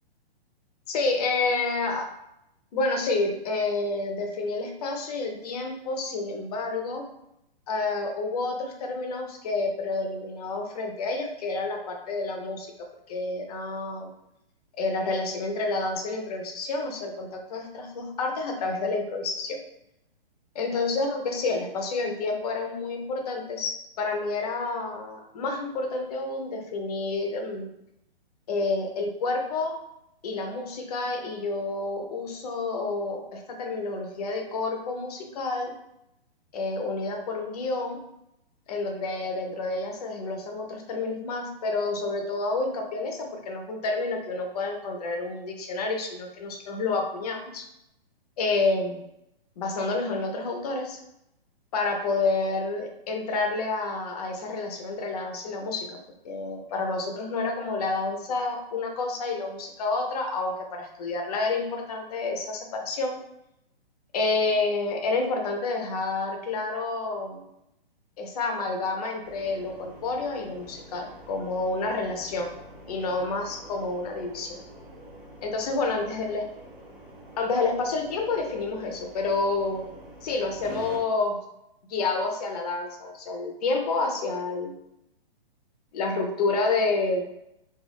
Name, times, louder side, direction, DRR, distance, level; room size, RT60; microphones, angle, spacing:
voice 1, 0.9-2.1 2.7-7.0 7.7-12.7 13.1-14.1 14.8-19.6 20.5-27.7 28.5-29.8 30.2-35.7 36.5-38.0 38.7-47.7 48.4-49.0 49.6-51.0 51.7-56.0 56.2-63.2 64.1-67.4 68.2-72.5 72.9-74.6 75.4-76.4 77.4-79.8 80.2-81.4 81.9-84.8 85.9-87.2, left 3 dB, 40° left, 3 dB, 0.5 m, -29 dB
sound 1, 69.2-81.0, right 1 dB, 25° right, 0.6 m, -46 dB
2.4 x 2.3 x 3.3 m, 0.82 s
hypercardioid pair, 145°, 30 cm